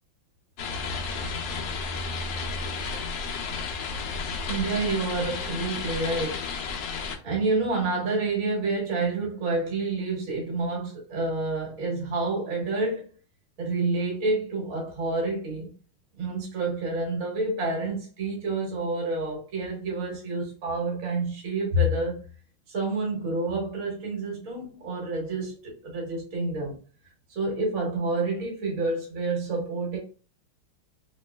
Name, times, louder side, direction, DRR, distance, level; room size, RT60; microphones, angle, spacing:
sound 1, 0.6-7.2, left 4 dB, 80° left, 0.8 m, -32 dB
voice 1, 4.4-6.4 7.2-13.1 13.6-15.7 16.2-22.2 22.7-26.8 27.3-30.0, right 2 dB, 45° right, 1.5 m, -28 dB
3.0 x 3.0 x 2.2 m
omnidirectional pair, 2.3 m